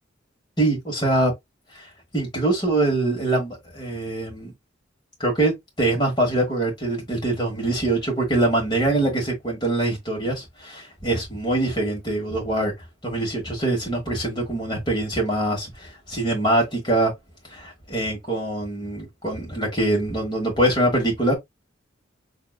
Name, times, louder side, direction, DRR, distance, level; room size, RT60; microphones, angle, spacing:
voice 1, 0.6-1.3 1.7-4.5 5.2-12.7 13.0-17.1 17.5-21.3, right 2 dB, 25° left, 1.4 m, -24 dB
5.8 x 2.4 x 2.3 m
head